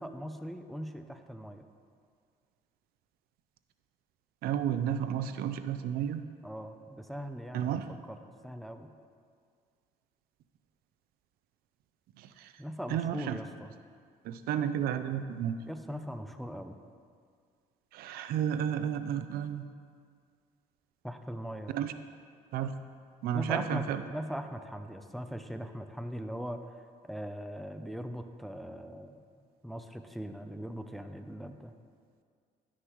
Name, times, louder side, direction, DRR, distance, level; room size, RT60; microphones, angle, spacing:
voice 1, 0.0-1.6 6.4-8.9 12.6-13.7 15.7-16.8 21.0-21.7 23.3-26.6 27.0-29.2 29.6-31.7, equal, ahead, 7 dB, 0.5 m, -40 dB
voice 2, 4.4-6.2 7.5-7.9 12.2-12.5 12.9-13.4 14.2-15.5 17.9-19.6 21.7-21.9 22.5-22.7 23.2-24.0, right 9 dB, 90° right, 10 dB, 0.5 m, -32 dB
11.5 x 9.8 x 3.1 m, 2.1 s
cardioid pair, 115°, 15 cm